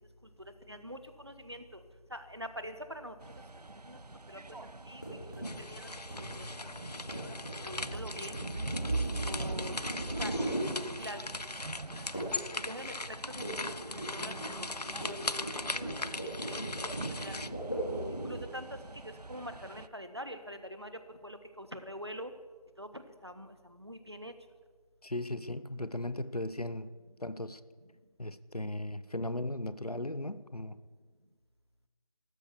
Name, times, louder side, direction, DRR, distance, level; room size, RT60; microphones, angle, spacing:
voice 1, 0.7-1.8 2.1-3.1 3.9-4.0 4.3-5.0 5.3-6.5 7.1-8.4 9.2-9.7 10.2-10.5 11.0-11.2 11.9-12.1 12.5-13.5 13.9-17.4 18.1-20.9 21.2-22.3 22.8-24.3, equal, 40° right, 1.4 m, -45 dB
sound 1, 3.2-19.9, right 3 dB, 80° right, 0.7 m, -43 dB
sound 2, 5.0-11.3 12.1-12.5 12.8-18.5, right 1 dB, 30° left, 3.4 m, -39 dB
sound 3, 5.4-17.5, left 2 dB, 85° left, 0.7 m, -40 dB
voice 2, 25.0-26.9 27.2-27.6 28.2-30.8, left 1 dB, 70° left, 1.1 m, -37 dB
14.5 x 13.5 x 7.0 m
figure-of-eight pair, 180°, 20 cm